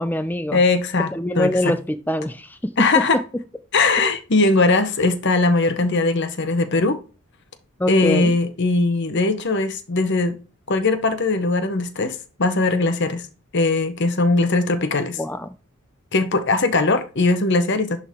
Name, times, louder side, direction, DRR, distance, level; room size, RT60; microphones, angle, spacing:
voice 1, 0.0-0.6 1.1-2.6 7.8-8.3 15.2-15.5, left 1 dB, 10° left, 0.5 m, -24 dB
voice 2, 0.5-1.7 2.8-3.2 3.7-7.0 7.9-10.4 10.7-13.2 13.5-15.2 16.1-18.0, left 3 dB, 50° left, 0.9 m, -20 dB
10.5 x 3.9 x 3.6 m
head